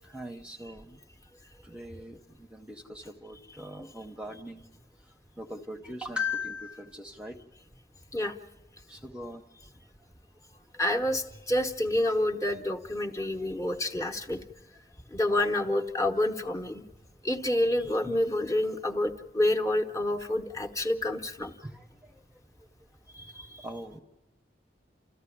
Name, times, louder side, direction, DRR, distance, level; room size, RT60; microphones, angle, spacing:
voice 1, 0.0-1.0 1.6-4.6 5.4-7.4 8.9-9.4 21.6-21.9 23.6-24.0, left 3 dB, 5° right, 5 dB, 0.8 m, -39 dB
voice 2, 10.8-14.4 15.1-16.8 17.2-21.5 23.1-23.7, left 1 dB, 20° left, 3 dB, 1.0 m, -28 dB
29.5 x 14.0 x 10.0 m, 1.0 s
head